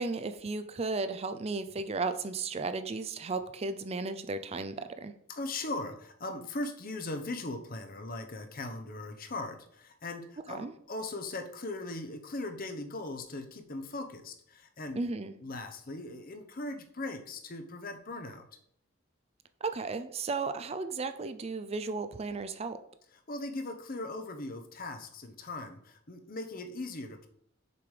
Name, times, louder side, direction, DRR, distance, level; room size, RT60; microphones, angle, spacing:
voice 1, 0.0-5.1 10.5-10.7 15.0-15.3 19.6-22.8, right 3 dB, 30° right, 10 dB, 0.4 m, -34 dB
voice 2, 5.3-15.0 15.4-18.5 23.3-27.3, left 2 dB, 45° left, 6 dB, 0.9 m, -39 dB
6.8 x 5.2 x 4.9 m, 0.67 s
head